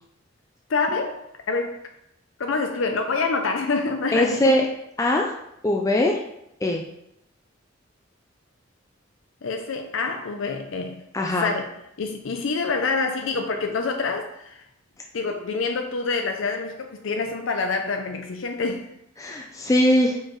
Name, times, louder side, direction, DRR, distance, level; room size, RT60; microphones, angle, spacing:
voice 1, 0.7-1.8 2.4-4.5 9.4-11.0 11.4-11.7 12.0-14.6 15.1-18.9, left 4 dB, 75° left, 5 dB, 0.5 m, -26 dB
voice 2, 4.1-4.7 5.0-5.3 5.6-6.2 6.6-6.8 11.1-11.5 19.2-20.2, left 1 dB, 15° left, 0 dB, 0.4 m, -21 dB
4.7 x 4.6 x 4.5 m, 0.81 s
head